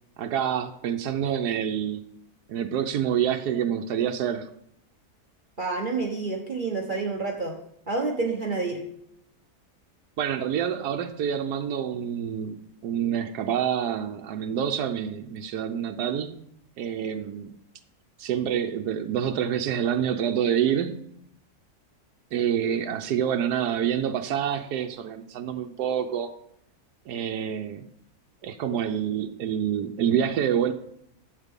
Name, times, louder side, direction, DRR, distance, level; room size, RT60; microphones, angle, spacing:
voice 1, 0.2-2.0 2.5-4.5 10.2-16.4 16.8-17.5 18.2-21.1 22.3-26.3 27.1-27.9 28.4-30.7, right 9 dB, 85° right, 5 dB, 1.3 m, -27 dB
voice 2, 5.6-7.6 7.9-8.8, right 3 dB, 35° right, 1 dB, 1.2 m, -28 dB
12.0 x 8.1 x 3.6 m, 0.74 s
omnidirectional pair, 1.7 m